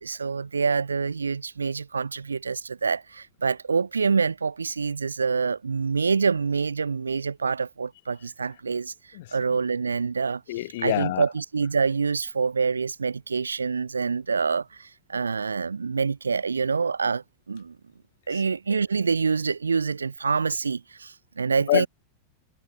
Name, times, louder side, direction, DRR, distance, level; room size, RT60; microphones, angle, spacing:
voice 1, 0.0-8.9 9.3-10.4 10.8-17.8 18.3-21.9, right 5 dB, 75° right, 2.5 m, -26 dB
voice 2, 10.5-11.3 18.3-18.4 18.7-18.8 21.7-21.9, left 17 dB, 55° left, 3.2 m, -26 dB
figure-of-eight pair, 90°, 0 cm